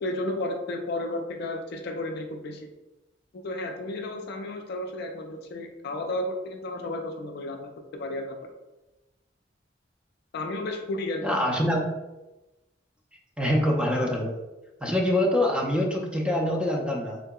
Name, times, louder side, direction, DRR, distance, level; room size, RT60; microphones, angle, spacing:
voice 1, 0.0-2.7 3.3-8.4 10.3-11.4, left 1 dB, 60° left, 3 dB, 0.4 m, -33 dB
voice 2, 11.2-11.8 13.4-14.3 14.8-17.2, left 1 dB, 5° right, -1 dB, 0.4 m, -25 dB
3.7 x 2.7 x 2.2 m, 1.0 s
head